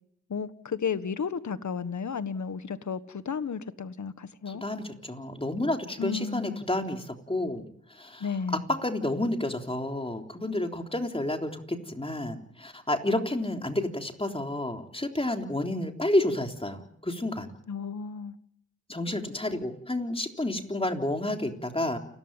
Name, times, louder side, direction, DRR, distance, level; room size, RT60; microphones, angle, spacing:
voice 1, 0.3-4.6 6.0-6.6 8.2-8.6 17.7-18.3, left 6 dB, 65° left, 13 dB, 1.6 m, -33 dB
voice 2, 4.5-17.5 18.9-22.0, left 1 dB, 20° left, 4 dB, 3.6 m, -30 dB
29.0 x 14.0 x 9.1 m, 0.70 s
cardioid pair, 70°, 31 cm